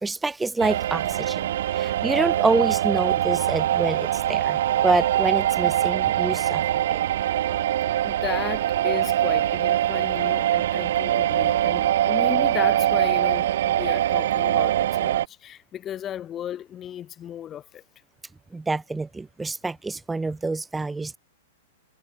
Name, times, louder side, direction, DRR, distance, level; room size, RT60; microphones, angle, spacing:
voice 1, 0.0-6.6 6.9-7.0 18.5-21.2, right 3 dB, 5° right, 0.8 m, -27 dB
sound 1, 0.6-15.3, right 12 dB, 60° right, 1.4 m, -23 dB
voice 2, 8.0-17.8, left 10 dB, 20° left, 0.9 m, -35 dB
hypercardioid pair, 160°, 0 cm